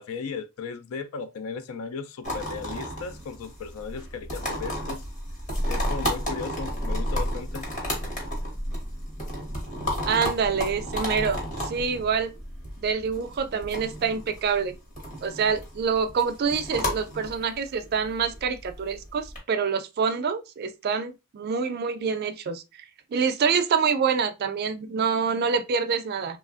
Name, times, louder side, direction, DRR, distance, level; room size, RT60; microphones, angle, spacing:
voice 1, 0.0-5.1 5.7-7.7, left 5 dB, 90° left, 0.4 m, -36 dB
sound 1, 2.2-19.4, equal, 35° left, 1.1 m, -32 dB
voice 2, 10.1-11.4 11.6-12.3 12.8-14.7 15.2-22.6 23.1-26.4, right 6 dB, 50° right, 0.4 m, -26 dB
2.9 x 2.4 x 2.4 m
head